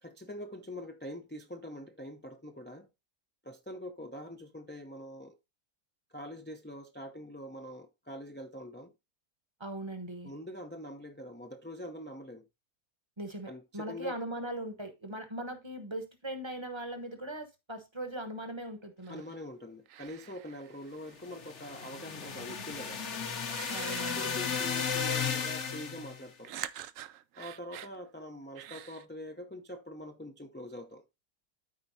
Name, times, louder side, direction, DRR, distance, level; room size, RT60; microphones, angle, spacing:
voice 1, 0.0-2.9 3.4-5.4 6.1-8.9 10.2-12.5 13.5-14.2 19.1-23.0 24.0-26.5 27.4-31.0, left 1 dB, 15° left, 0.5 m, -44 dB
voice 2, 9.6-10.3 13.2-19.2 23.7-24.6, right 1 dB, 20° right, 1.0 m, -40 dB
sound 1, 19.0-19.4 19.9-21.3 22.8-22.9 23.5-25.0 26.4-28.0 28.6-29.0, right 11 dB, 70° right, 0.9 m, -46 dB
sound 2, 21.2-26.2, left 6 dB, 55° left, 1.3 m, -34 dB
13.5 x 4.5 x 2.6 m
omnidirectional pair, 1.5 m